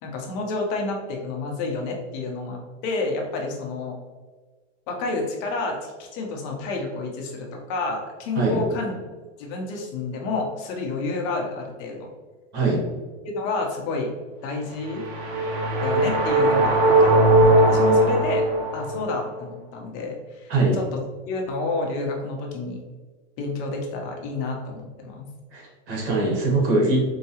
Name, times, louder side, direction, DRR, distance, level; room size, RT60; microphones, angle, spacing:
voice 1, 0.0-3.9 4.9-8.9 9.4-12.0 13.3-14.1 14.4-15.1 15.8-17.1 17.6-18.5 18.7-20.5 21.3-22.8 23.4-25.3, left 3 dB, 45° left, 1 dB, 0.8 m, -29 dB
voice 2, 12.5-12.9 20.5-20.8 25.5-27.0, right 2 dB, 60° right, -2 dB, 1.5 m, -22 dB
sound 1, 14.8-19.1, right 1 dB, 40° right, 0.8 m, -19 dB
4.6 x 2.3 x 2.8 m, 1.3 s
supercardioid pair, 140°, 37 cm